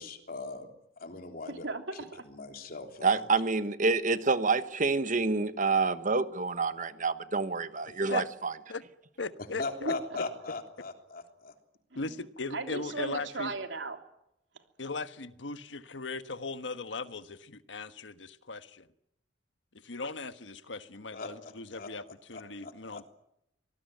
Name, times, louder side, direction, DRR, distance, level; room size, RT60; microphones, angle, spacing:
voice 1, 0.0-1.7 2.3-3.1 9.6-11.5 21.1-23.1, left 3 dB, 50° left, 5 dB, 3.4 m, -40 dB
voice 2, 1.5-2.2 9.8-10.2 12.0-12.1 12.5-14.0, right 3 dB, 85° right, 6 dB, 3.1 m, -37 dB
voice 3, 3.0-8.5, right 4 dB, 45° right, 12 dB, 1.3 m, -28 dB
voice 4, 9.2-9.9 11.9-13.5 14.8-18.9 19.8-23.1, left 3 dB, 90° left, 11 dB, 1.3 m, -38 dB
25.5 x 19.0 x 9.2 m, 0.80 s
head